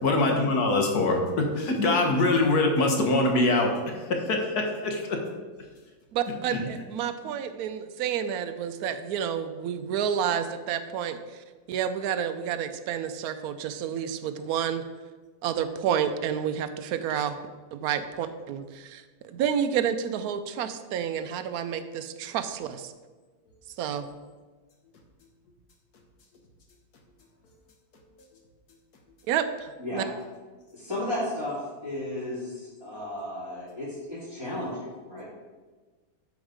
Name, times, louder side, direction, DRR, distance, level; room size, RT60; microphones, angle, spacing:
voice 1, 0.0-5.2 6.5-6.6 7.3-7.4, left 2 dB, 55° left, 2 dB, 1.6 m, -24 dB
voice 2, 6.1-14.8 15.4-17.4 17.7-22.9 23.8-24.1 29.3-30.0, right 8 dB, 80° right, 9 dB, 0.8 m, -30 dB
voice 3, 30.7-35.2, left 1 dB, 10° right, -10 dB, 2.7 m, -34 dB
11.5 x 4.0 x 5.0 m, 1.4 s
omnidirectional pair, 2.2 m